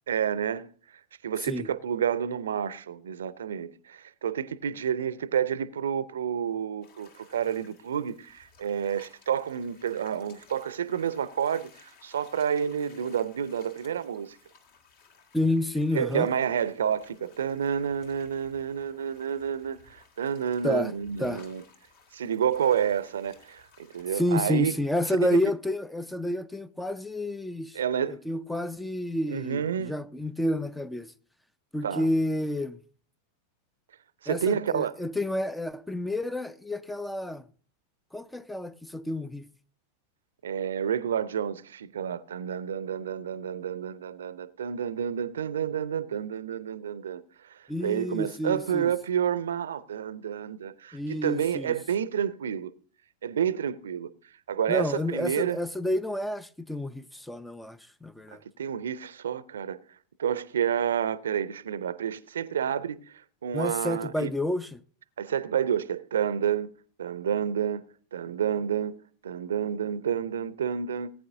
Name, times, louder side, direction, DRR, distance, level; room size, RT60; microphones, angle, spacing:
voice 1, 0.1-0.7 1.2-14.4 15.9-21.6 22.1-23.7 23.9-24.7 25.2-25.4 27.7-28.2 29.3-30.0 31.8-32.1 34.2-34.9 40.4-52.7 53.2-54.1 54.5-55.6 58.6-59.8 60.2-63.1 63.4-64.3 65.2-66.7 67.0-67.8 68.1-71.1, right 8 dB, 65° right, 0.6 m, -29 dB
sound 1, 6.8-24.4, left 5 dB, 50° left, 1.9 m, -58 dB
voice 2, 15.3-16.3 20.6-20.9 21.2-21.4 24.1-27.8 28.1-31.1 31.7-32.8 34.3-37.4 38.1-39.5 47.7-48.9 50.9-51.7 54.7-58.4 63.5-64.8, left 1 dB, 5° left, 0.5 m, -29 dB
19.0 x 9.0 x 2.6 m
figure-of-eight pair, 90°, 0 cm